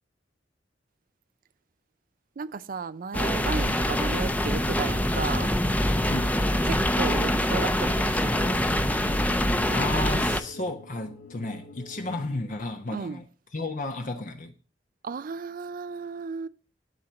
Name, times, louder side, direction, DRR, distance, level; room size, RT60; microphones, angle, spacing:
voice 1, 2.4-5.5 6.6-8.6 12.9-13.2 15.0-16.5, right 5 dB, 50° right, 0.4 m, -34 dB
sound 1, 3.1-10.4, left 1 dB, 10° left, 0.7 m, -25 dB
sound 2, 4.4-12.3, left 1 dB, 75° left, 2.4 m, -45 dB
voice 2, 9.7-13.3 13.5-14.5, left 2 dB, 45° left, 1.0 m, -33 dB
12.5 x 4.5 x 6.3 m
head